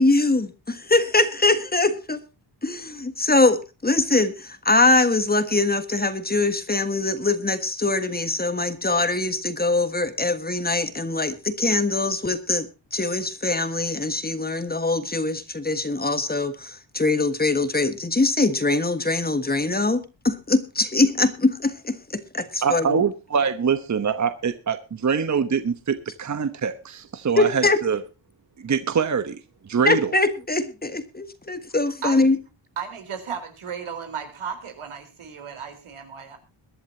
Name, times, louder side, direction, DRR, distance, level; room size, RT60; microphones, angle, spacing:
voice 1, 0.0-2.2 2.6-12.7 12.9-22.9 27.4-27.8 29.9-32.4, left 2 dB, 20° left, 10 dB, 1.5 m, -22 dB
voice 2, 22.6-28.0 28.6-29.4 29.7-30.1, right 6 dB, 35° right, 11 dB, 1.0 m, -24 dB
voice 3, 32.8-36.4, right 7 dB, 90° right, 7 dB, 4.1 m, -34 dB
22.0 x 11.0 x 2.8 m, 0.29 s
wide cardioid pair, 125°, 48 cm